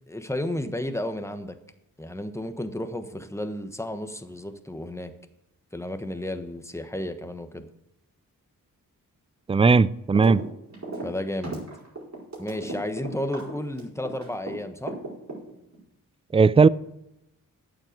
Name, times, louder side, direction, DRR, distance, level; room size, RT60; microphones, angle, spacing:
voice 1, 0.1-1.6 2.0-5.1 5.7-7.7 11.0-11.6 12.4-15.0, left 1 dB, 10° left, 8 dB, 1.2 m, -32 dB
voice 2, 9.5-10.4 16.3-16.7, right 4 dB, 15° right, 20 dB, 0.4 m, -17 dB
sound 1, 10.2-10.4 10.7-14.5 14.9-15.8, right 2 dB, 45° right, 4.9 m, -35 dB
8.6 x 7.6 x 6.6 m, 0.86 s
cardioid pair, 45°, 36 cm